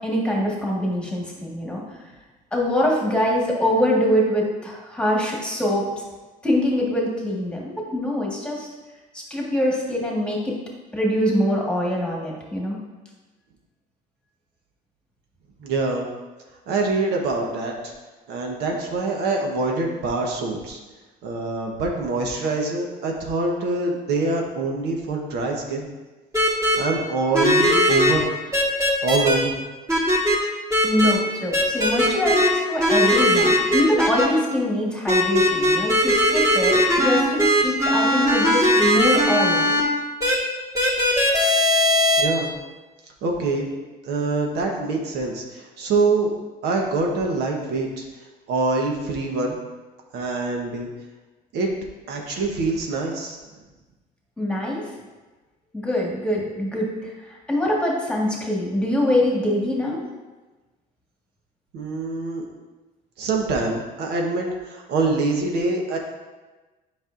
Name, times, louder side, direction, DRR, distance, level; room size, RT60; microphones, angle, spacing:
voice 1, 0.0-1.8 2.5-5.9 6.4-8.7 9.1-10.5 10.9-12.8 30.8-39.7 54.4-54.9 55.7-60.0, left 1 dB, 5° left, -3 dB, 1.5 m, -23 dB
voice 2, 15.6-16.1 16.7-17.9 18.3-20.8 21.2-25.9 26.8-28.3 29.0-29.6 42.2-42.5 43.2-43.7 44.0-46.3 46.6-48.0 48.5-49.6 50.1-50.9 51.5-51.7 52.1-53.4 61.7-62.5 63.2-66.0, right 3 dB, 80° right, 1 dB, 1.1 m, -25 dB
sound 1, 26.3-26.8 27.3-28.1 28.5-29.3 29.9-30.4 30.7-31.1 31.5-32.5 32.8-34.3 35.1-39.8 40.2-40.3 40.7-42.2, equal, 20° right, 1.6 m, -19 dB
8.0 x 5.4 x 2.5 m, 1.2 s
cardioid pair, 110°, 17 cm